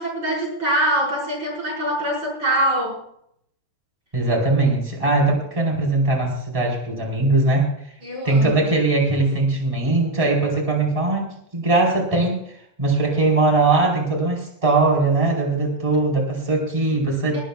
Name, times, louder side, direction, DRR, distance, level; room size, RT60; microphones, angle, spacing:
voice 1, 0.0-3.0 8.0-8.7 17.3-17.4, right 1 dB, 35° right, -2 dB, 6.3 m, -24 dB
voice 2, 4.1-7.7 8.2-12.4 12.8-17.4, right 2 dB, 10° right, -1 dB, 4.4 m, -20 dB
20.5 x 18.0 x 2.5 m, 0.70 s
omnidirectional pair, 3.7 m